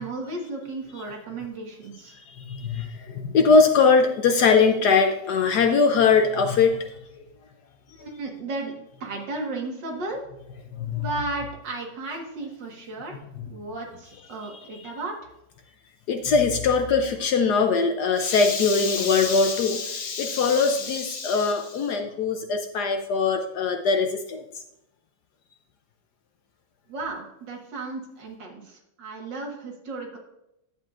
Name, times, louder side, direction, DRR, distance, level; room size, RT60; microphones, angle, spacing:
voice 1, 0.0-2.2 7.9-10.2 11.0-13.2 13.5-15.1 26.9-30.2, right 2 dB, 65° right, 0 dB, 2.2 m, -34 dB
voice 2, 2.5-6.8 10.8-11.0 16.1-24.4, left 5 dB, 65° left, 6 dB, 1.1 m, -21 dB
10.5 x 8.1 x 2.5 m, 0.86 s
omnidirectional pair, 2.1 m